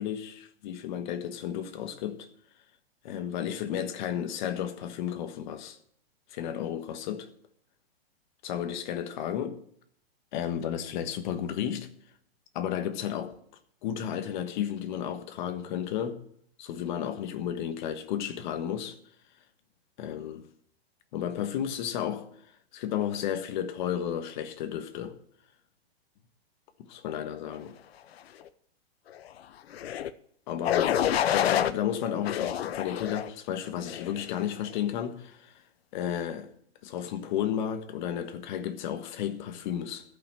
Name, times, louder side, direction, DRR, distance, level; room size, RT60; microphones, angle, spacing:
voice 1, 0.0-2.3 3.0-5.8 6.3-7.3 8.4-9.6 10.3-11.9 12.5-13.4 13.8-16.2 16.6-19.0 20.0-20.5 21.1-22.3 22.7-25.2 26.9-27.8 30.5-35.5 35.9-36.5 36.8-40.0, left 9 dB, 50° left, 1.4 m, -33 dB
sound 1, 29.7-30.1 30.6-31.7 32.2-33.3 33.9-34.2, left 10 dB, 75° left, 0.8 m, -27 dB
14.0 x 5.9 x 7.6 m
hypercardioid pair, 140°, 31 cm